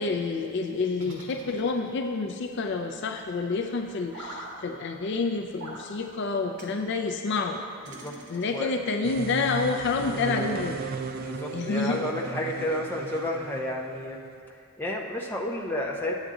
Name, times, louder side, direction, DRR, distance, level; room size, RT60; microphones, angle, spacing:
voice 1, 0.0-7.6 8.3-10.8 11.5-12.0, left 4 dB, 50° left, 5 dB, 0.4 m, -28 dB
sound 1, 1.0-2.2 4.1-4.6 5.6-5.9 6.6-6.8 7.8-8.7, right 1 dB, 80° right, 1.3 m, -43 dB
voice 2, 7.9-8.7 11.2-14.2 14.8-16.1, left 1 dB, 10° left, -2 dB, 0.6 m, -31 dB
sound 2, 9.0-14.4, right 4 dB, 40° right, 0.3 m, -36 dB
8.8 x 8.2 x 3.7 m, 2.3 s
head